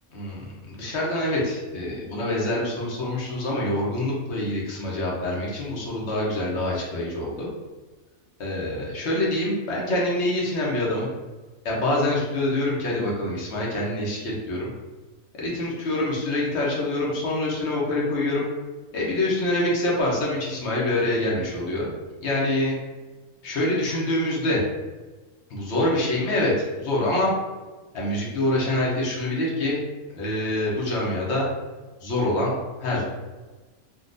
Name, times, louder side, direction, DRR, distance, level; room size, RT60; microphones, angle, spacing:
voice 1, 0.1-7.5 8.4-11.1 11.6-14.7 15.4-18.5 18.9-21.9 22.2-22.8 23.4-24.6 25.5-27.3 27.9-29.8 30.1-31.5 32.0-32.5 32.8-33.1, left 1 dB, 55° left, -3 dB, 1.0 m, -25 dB
3.7 x 2.4 x 2.5 m, 1.2 s
omnidirectional pair, 1.5 m